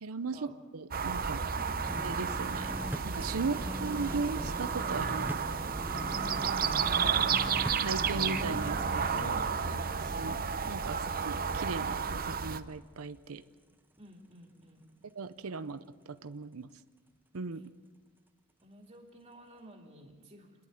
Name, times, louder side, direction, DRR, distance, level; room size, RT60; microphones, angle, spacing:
voice 1, 0.0-1.4 2.0-2.7 3.0-5.3 7.8-9.4 10.2-13.4 15.1-16.7 17.3-17.7, right 4 dB, 75° right, 11 dB, 0.7 m, -38 dB
sound 1, 0.9-12.6, right 6 dB, 40° right, 0.8 m, -32 dB
sound 2, 1.8-11.7 12.0-12.1, right 1 dB, 10° right, 0.5 m, -42 dB
voice 2, 3.3-3.9 5.9-7.3 9.3-9.9 14.0-14.9 18.6-20.6, right 1 dB, 25° right, 1 dB, 2.4 m, -52 dB
sound 3, 5.9-7.6 8.0-10.7, left 2 dB, 55° left, 1.0 m, -45 dB
27.5 x 11.0 x 9.3 m, 1.4 s
head